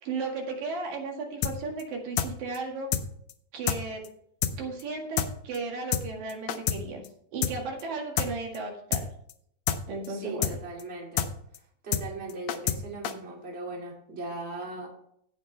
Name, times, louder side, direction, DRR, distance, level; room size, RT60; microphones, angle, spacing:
voice 1, 0.0-2.9 3.5-4.0 4.6-7.0 7.3-9.1 9.9-10.6, right 3 dB, 80° right, 1 dB, 3.6 m, -35 dB
sound 1, 1.4-1.5 1.8-1.9 2.2-2.3 2.5-2.6 2.9-3.0 3.3-3.4 3.7-4.1 4.4-4.5 4.8-4.9 5.2-5.3 5.5-5.6 5.9-6.0 6.3-6.8 7.0-7.1 7.4-7.5 7.8-7.9 8.2-8.3 8.5-8.6 8.9-9.0 9.3-9.4 9.7-9.8 10.0-10.1 10.4-10.5 10.8-10.9 11.2-11.3 11.5-11.6 11.9-12.0 12.3-12.8 13.0-13.1, left 10 dB, 80° left, 1.5 m, -27 dB
voice 2, 10.1-11.3 11.8-14.9, right 2 dB, 20° right, -1 dB, 2.4 m, -38 dB
16.5 x 6.5 x 3.3 m, 0.69 s
omnidirectional pair, 4.0 m